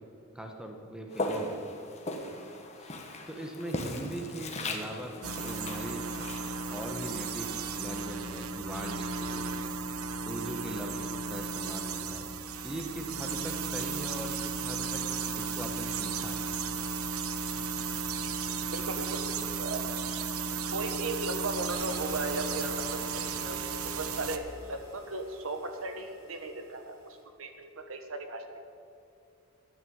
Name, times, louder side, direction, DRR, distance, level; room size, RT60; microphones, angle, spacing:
voice 1, 0.3-1.6 2.8-2.9 3.3-6.1 6.7-9.7 10.3-12.3 12.6-15.0 15.4-16.5, right 1 dB, 5° right, 3 dB, 1.3 m, -40 dB
Walk footsteps, 1.1-8.2, left 2 dB, 30° left, 1.4 m, -39 dB
sound 1, 5.2-24.4, right 4 dB, 90° right, 0.9 m, -35 dB
voice 2, 18.5-19.3 19.6-19.9 20.7-27.0 27.4-28.6, right 2 dB, 70° right, 6 dB, 1.4 m, -37 dB
sound 2, 21.7-27.2, right 1 dB, 20° right, 4.4 m, -50 dB
13.5 x 9.5 x 8.7 m, 2.6 s
head